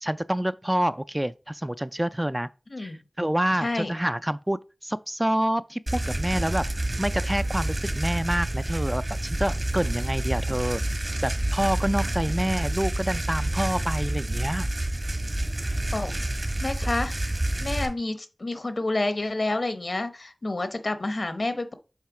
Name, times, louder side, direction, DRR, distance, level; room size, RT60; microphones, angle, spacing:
voice 1, 0.0-2.5 2.8-14.7, right 1 dB, 15° right, 0.3 m, -28 dB
voice 2, 3.6-3.9 15.9-16.1 16.6-17.3 17.6-21.7, left 2 dB, 65° left, 0.8 m, -29 dB
sound 1, 5.9-17.9, right 1 dB, 55° right, 1.5 m, -28 dB
7.4 x 3.3 x 4.8 m
wide cardioid pair, 55°, 0 cm